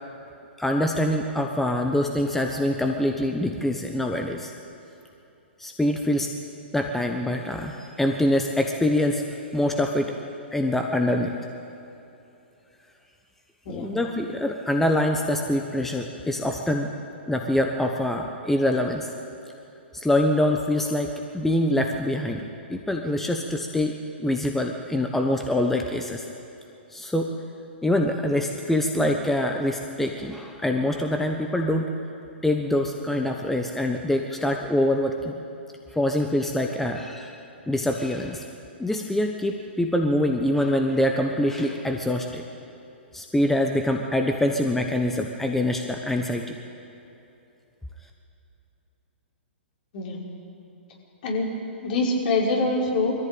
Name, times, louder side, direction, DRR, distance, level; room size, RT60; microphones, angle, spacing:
voice 1, 0.6-4.5 5.6-6.3 6.7-9.3 9.5-10.1 10.5-11.3 13.7-16.9 17.3-19.1 19.9-22.4 22.7-26.3 26.9-27.4 27.8-31.9 32.4-35.3 35.9-37.4 37.7-38.5 38.8-42.4 43.1-46.4, left 1 dB, 5° left, 3 dB, 1.1 m, -24 dB
voice 2, 51.8-53.1, left 2 dB, 50° left, -1 dB, 5.1 m, -24 dB
22.0 x 14.5 x 9.0 m, 2.9 s
hypercardioid pair, 125°, 6 cm